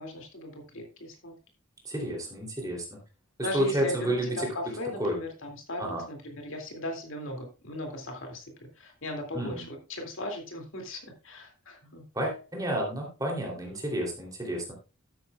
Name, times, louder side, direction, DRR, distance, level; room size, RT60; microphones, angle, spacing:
voice 1, 0.0-1.3 2.6-2.8 3.4-8.4 8.8-12.0, left 1 dB, 65° left, 2 dB, 2.4 m, -37 dB
voice 2, 1.8-3.0 3.5-4.5 5.0-5.2 5.8-6.0 9.3-9.6 12.1-14.7, right 1 dB, 15° right, -1 dB, 3.0 m, -30 dB
12.5 x 9.2 x 2.3 m, 0.31 s
head